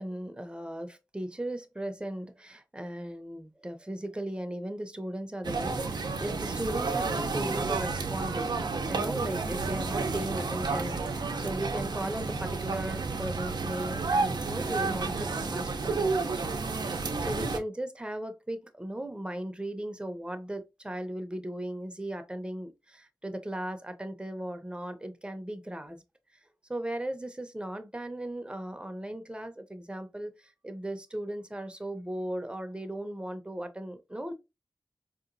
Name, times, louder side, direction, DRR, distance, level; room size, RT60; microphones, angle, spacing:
voice 1, 0.0-8.5 8.8-26.0 26.7-34.3, right 1 dB, 15° right, 0.7 m, -37 dB
sound 1, 5.4-17.6, right 4 dB, 85° right, 0.6 m, -31 dB
4.1 x 2.9 x 2.6 m
wide cardioid pair, 65°, 7 cm